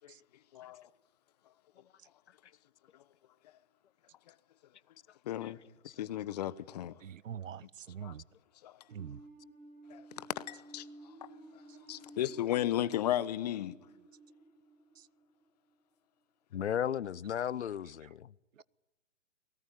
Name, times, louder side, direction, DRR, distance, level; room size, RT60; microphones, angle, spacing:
voice 1, 5.3-5.6 6.0-6.9 8.0-8.1 8.6-8.7 9.9-10.0 10.4-10.8 11.9-13.7, left 12 dB, 30° left, 0.9 m, -34 dB
voice 2, 7.0-8.2 8.9-9.2 15.0-15.1 18.6-18.7, right 8 dB, 75° right, 0.8 m, -44 dB
sound 1, 8.9-15.8, right 1 dB, 20° right, 7.4 m, -54 dB
voice 3, 16.5-18.3, left 9 dB, 60° left, 0.8 m, -35 dB
23.5 x 18.5 x 9.3 m
hypercardioid pair, 140°, 39 cm